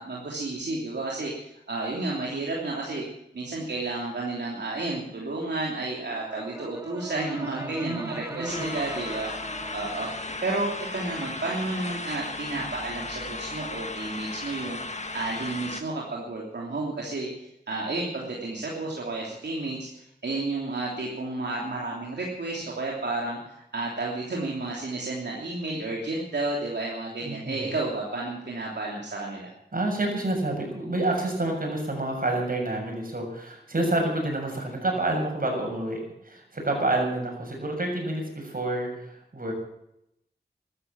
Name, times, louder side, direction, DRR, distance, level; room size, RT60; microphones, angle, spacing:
voice 1, 0.0-3.0 3.3-9.3 9.7-14.8 15.1-29.5, right 2 dB, 75° right, -3 dB, 3.2 m, -31 dB
Brass instrument, 6.0-10.2, right 1 dB, 15° right, 1.4 m, -41 dB
voice 2, 7.6-8.7 27.2-27.6 29.7-39.5, right 2 dB, 55° right, 2 dB, 7.0 m, -29 dB
sound 1, 8.5-15.8, left 2 dB, 40° left, 1.7 m, -36 dB
14.0 x 13.5 x 7.5 m, 0.80 s
cardioid pair, 45°, 18 cm